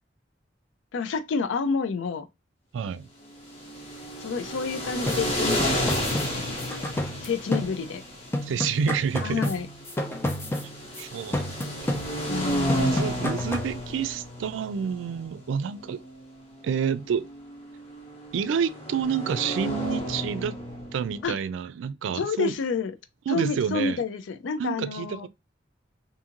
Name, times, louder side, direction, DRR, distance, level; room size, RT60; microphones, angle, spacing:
voice 1, 0.9-2.3 4.2-5.9 6.4-6.6 7.2-8.0 9.2-9.7 12.3-13.3 21.2-21.4 22.1-22.9 23.3-25.3, left 5 dB, 90° left, 0.4 m, -29 dB
voice 2, 2.7-3.1 8.4-9.5 10.6-10.7 11.0-11.6 12.8-16.0 16.6-17.3 18.3-20.6 20.9-22.5 23.3-24.0 24.6-25.3, right 7 dB, 90° right, 0.3 m, -28 dB
sound 1, 3.3-21.2, equal, 35° left, 0.8 m, -32 dB
sound 2, 5.1-8.1 8.3-11.0 11.3-12.4 12.7-13.8, left 1 dB, 15° left, 0.4 m, -31 dB
2.6 x 2.5 x 2.8 m
head